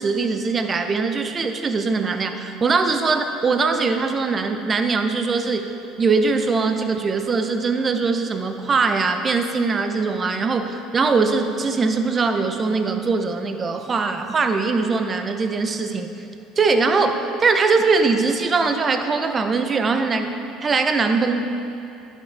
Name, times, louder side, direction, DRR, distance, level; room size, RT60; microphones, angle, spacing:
voice 1, 0.0-5.7 6.0-16.1 16.6-20.3 20.6-21.5, right 4 dB, 30° right, 7 dB, 0.6 m, -21 dB
11.0 x 5.8 x 3.4 m, 2.7 s
supercardioid pair, 95°, 0 cm